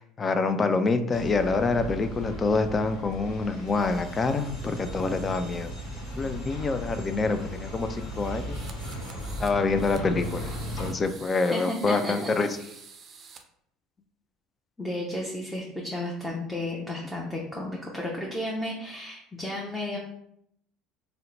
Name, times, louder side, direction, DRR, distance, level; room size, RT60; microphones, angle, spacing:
voice 1, 0.0-5.7 6.2-8.6 9.4-12.5, left 3 dB, 30° left, 9 dB, 0.4 m, -26 dB
sound 1, 1.1-10.9, equal, 75° left, 1.0 m, -37 dB
sound 2, 8.5-9.5 9.8-13.4, right 6 dB, 45° right, 0.4 m, -48 dB
voice 2, 11.5-12.3 14.8-20.0, left 1 dB, 10° left, -3 dB, 0.7 m, -33 dB
2.8 x 2.1 x 3.8 m, 0.72 s
hypercardioid pair, 70°, 0 cm